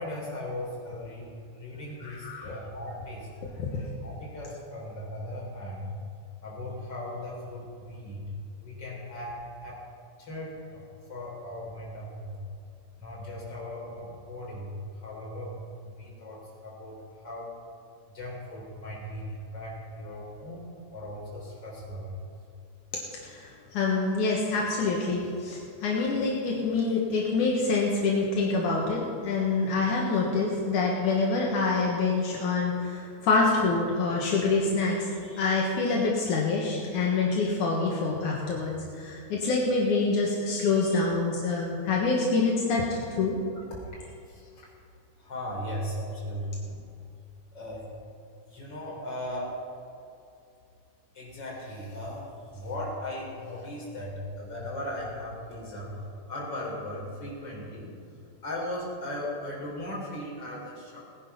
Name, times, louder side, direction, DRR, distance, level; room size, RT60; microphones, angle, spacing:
voice 1, 0.0-3.3 4.0-6.0 6.4-8.3 8.6-9.8 10.2-12.4 13.0-14.8 15.0-15.6 15.8-17.5 18.1-20.6 20.9-22.2 43.5-43.6 44.3-44.7 45.2-46.8 47.5-47.9 48.5-49.6 51.1-57.9 58.4-61.0, left 1 dB, 35° left, -4 dB, 4.4 m, -38 dB
voice 2, 2.0-2.5 3.7-3.9 23.2-43.4, left 3 dB, 75° left, -3 dB, 2.9 m, -26 dB
18.5 x 10.0 x 5.7 m, 2.5 s
omnidirectional pair, 3.6 m